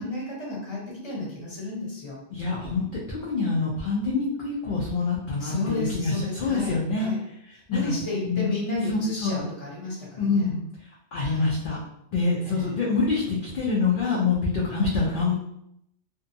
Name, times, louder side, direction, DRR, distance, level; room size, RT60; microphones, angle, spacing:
voice 1, 0.0-2.2 5.4-7.2 7.7-10.5 11.2-11.5 12.4-12.8, left 2 dB, 25° left, -5 dB, 0.8 m, -32 dB
voice 2, 2.3-7.1 7.8-7.9 8.2-8.5 8.9-9.4 10.2-10.6 11.1-11.8 12.1-15.3, left 4 dB, 60° left, -4 dB, 0.6 m, -26 dB
2.6 x 2.2 x 2.6 m, 0.77 s
omnidirectional pair, 1.2 m